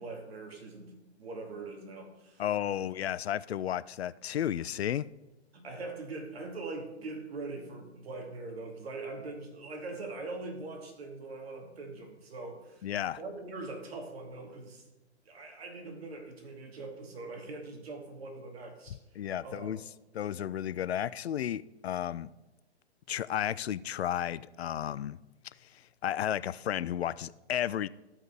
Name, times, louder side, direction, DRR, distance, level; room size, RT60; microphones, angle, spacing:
voice 1, 0.0-2.4 5.5-12.9 13.2-14.8 15.3-19.0 19.4-19.9, right 3 dB, 60° right, 2.5 m, -42 dB
voice 2, 2.4-5.1 12.8-13.2 19.2-19.8 20.1-22.3 23.1-25.2 26.0-27.9, left 10 dB, 65° left, 0.5 m, -33 dB
14.5 x 5.5 x 4.8 m
hypercardioid pair, 130°, 34 cm